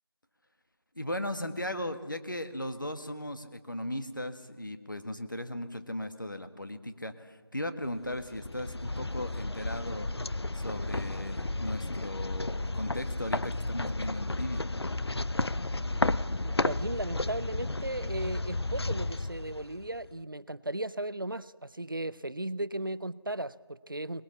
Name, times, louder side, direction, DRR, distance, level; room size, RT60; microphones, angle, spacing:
voice 1, 0.9-10.1 10.5-14.6, left 1 dB, 50° left, 8 dB, 1.6 m, -37 dB
sound 1, 8.0-20.1, left 2 dB, 70° left, 0.7 m, -33 dB
voice 2, 16.4-24.2, right 1 dB, 50° right, 18 dB, 0.6 m, -36 dB
22.5 x 20.0 x 7.1 m, 1.4 s
figure-of-eight pair, 180°, 14 cm